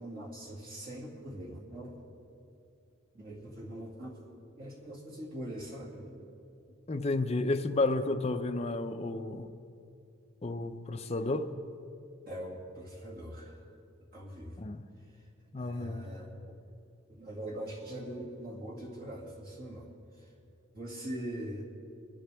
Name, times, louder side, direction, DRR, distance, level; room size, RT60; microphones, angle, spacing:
voice 1, 0.0-2.0 3.1-4.2 4.6-6.1 11.0-11.1 12.3-13.7 14.1-14.6 15.1-15.2 15.6-16.6 17.1-19.9 20.2-20.3 20.7-21.6, right 1 dB, 45° right, -4 dB, 2.1 m, -42 dB
voice 2, 6.9-9.5 10.4-11.5 14.6-14.9 15.5-16.1, left 2 dB, 30° left, 6 dB, 0.5 m, -31 dB
23.0 x 11.0 x 3.4 m, 2.6 s
head